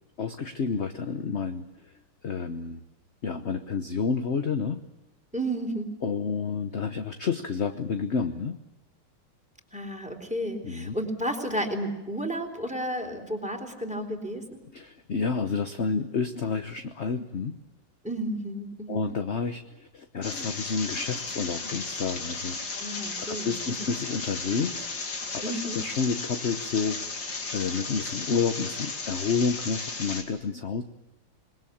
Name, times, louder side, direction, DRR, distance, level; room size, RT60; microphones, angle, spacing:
voice 1, 0.2-1.9 2.2-2.8 3.2-4.8 6.0-8.6 10.6-10.9 14.7-17.6 18.9-22.8 23.1-27.0 27.5-30.8, left 5 dB, 40° left, 8 dB, 1.1 m, -30 dB
voice 2, 5.3-5.9 9.7-14.6 18.0-19.1 22.8-23.9 25.4-25.8, right 1 dB, 5° right, 5 dB, 3.8 m, -32 dB
sound 1, 20.2-30.2, left 4 dB, 65° left, 3.2 m, -35 dB
27.0 x 21.0 x 8.7 m, 1.0 s
omnidirectional pair, 2.2 m